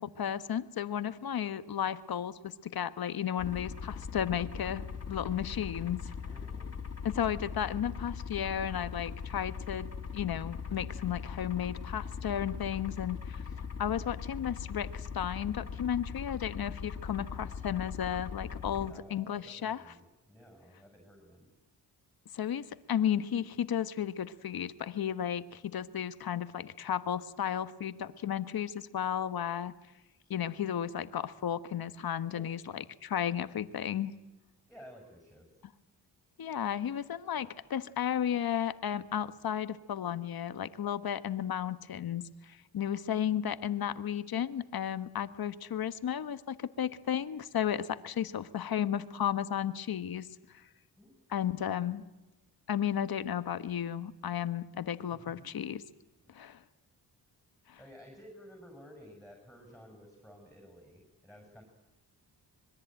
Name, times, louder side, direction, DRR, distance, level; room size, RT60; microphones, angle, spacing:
voice 1, 0.0-6.1 7.0-13.4 13.8-19.8 22.3-29.7 30.3-34.1 36.4-50.3 51.3-52.0 52.7-55.8 56.3-56.6 57.7-57.8, left 9 dB, 60° left, 12 dB, 1.3 m, -34 dB
sound 1, 3.4-18.9, left 6 dB, 35° left, 3.0 m, -40 dB
voice 2, 6.2-6.7 18.7-21.5 32.2-32.5 34.7-35.5 51.0-51.1 55.1-55.5 56.2-56.3 57.8-61.6, equal, ahead, 3 dB, 6.8 m, -54 dB
25.5 x 21.5 x 9.0 m, 1.0 s
cardioid pair, 90°, 41 cm